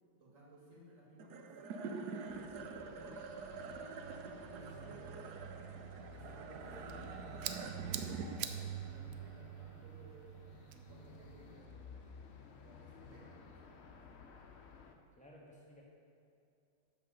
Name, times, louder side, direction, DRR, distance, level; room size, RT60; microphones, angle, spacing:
voice 1, 0.2-3.6 4.3-5.2 6.1-10.3 10.7-12.1 12.6-14.2, right 1 dB, 40° right, -4 dB, 2.4 m, -59 dB
sound 1, 1.2-11.7, right 5 dB, 65° right, 1.1 m, -46 dB
sound 2, 2.3-14.9, left 6 dB, 80° left, 0.5 m, -56 dB
voice 2, 4.6-5.0 15.2-15.8, equal, 5° left, -3 dB, 1.4 m, -58 dB
sound 3, 6.6-11.6, right 9 dB, 90° right, 0.7 m, -48 dB
10.5 x 6.2 x 6.5 m, 2.6 s
omnidirectional pair, 2.1 m